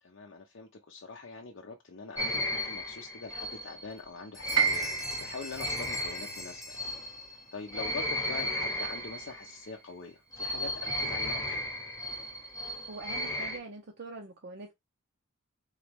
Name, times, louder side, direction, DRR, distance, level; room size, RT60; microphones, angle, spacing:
voice 1, 0.0-6.9 7.5-11.6, left 4 dB, 55° left, 0.6 m, -43 dB
sound 1, 2.2-9.7 10.3-13.6, left 1 dB, 15° left, 1.0 m, -35 dB
sound 2, 3.9-4.1 4.3-7.5, left 1 dB, ahead, 0.5 m, -46 dB
Piano, 4.5-10.5 10.8-12.0 12.4-12.5 13.2-13.5, right 7 dB, 85° right, 0.9 m, -35 dB
voice 2, 12.9-14.7, right 3 dB, 50° right, 0.6 m, -43 dB
4.0 x 3.1 x 3.3 m
head